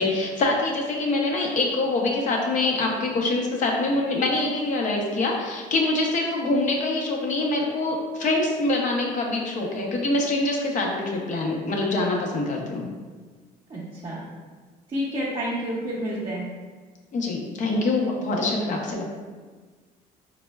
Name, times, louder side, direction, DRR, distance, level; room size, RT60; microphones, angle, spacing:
voice 1, 0.0-12.9 17.1-19.0, left 2 dB, 50° left, 0 dB, 0.6 m, -25 dB
voice 2, 13.7-14.2 14.9-16.5, equal, 30° right, -6 dB, 0.6 m, -29 dB
4.3 x 2.0 x 2.2 m, 1.5 s
cardioid pair, 110°, 17 cm